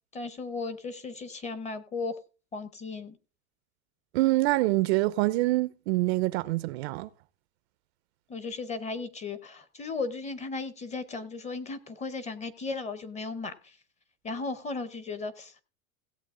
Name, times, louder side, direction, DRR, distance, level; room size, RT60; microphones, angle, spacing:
voice 1, 0.1-2.2 2.5-3.2 8.3-13.8 14.2-15.6, left 3 dB, 15° left, 0.6 m, -36 dB
voice 2, 4.1-7.1, right 19 dB, 50° right, 0.5 m, -25 dB
16.5 x 7.8 x 3.6 m
supercardioid pair, 135°, 45 cm